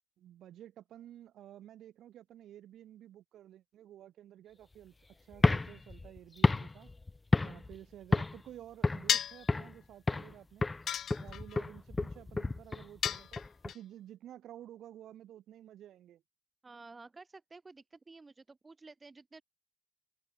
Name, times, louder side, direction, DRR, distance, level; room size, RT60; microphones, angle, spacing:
voice 1, 0.2-4.9 5.2-6.9 7.4-10.7 11.2-16.2, right 12 dB, 75° right, 7.8 m, -52 dB
sound 1, 5.3-7.8 8.1-8.5 8.8-9.8 10.1-10.4 10.6-13.7, left 3 dB, 20° left, 0.7 m, -31 dB
sound 2, 9.1-9.5 10.9-11.6 13.0-13.8, left 9 dB, 65° left, 0.6 m, -33 dB
voice 2, 16.6-19.4, right 3 dB, 25° right, 1.6 m, -53 dB
cardioid pair, 90°, 0 cm